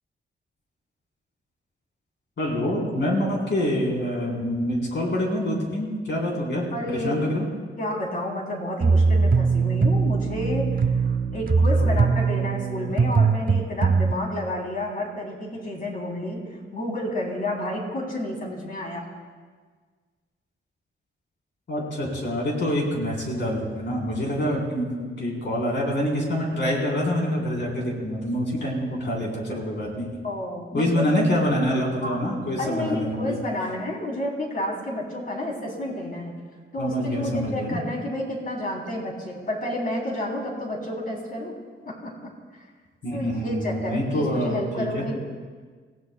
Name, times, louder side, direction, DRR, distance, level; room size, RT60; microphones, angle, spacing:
voice 1, 2.4-7.5 11.7-12.0 21.7-30.1 30.7-33.3 36.8-37.8 43.0-45.2, left 1 dB, 60° left, -3 dB, 4.1 m, -26 dB
voice 2, 6.7-7.2 7.8-19.1 30.2-31.3 32.0-32.2 32.6-36.3 36.7-41.5 41.8-42.3 43.1-45.2, left 1 dB, 40° left, -1 dB, 3.4 m, -30 dB
sound 1, 8.8-14.1, right 4 dB, 45° right, 0.7 m, -21 dB
28.0 x 17.0 x 2.3 m, 1.5 s
wide cardioid pair, 160°, 21 cm